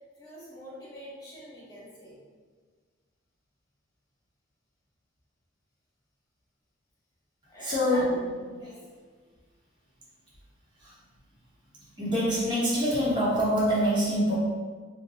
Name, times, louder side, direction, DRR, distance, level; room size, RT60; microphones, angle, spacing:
voice 1, 0.2-2.2 7.5-8.2 8.6-8.8, equal, 20° left, -9 dB, 1.0 m, -44 dB
voice 2, 7.6-8.3 8.6-8.9 10.8-10.9 12.0-14.3, equal, 25° right, -9 dB, 0.8 m, -25 dB
2.7 x 2.1 x 4.1 m, 1.5 s
head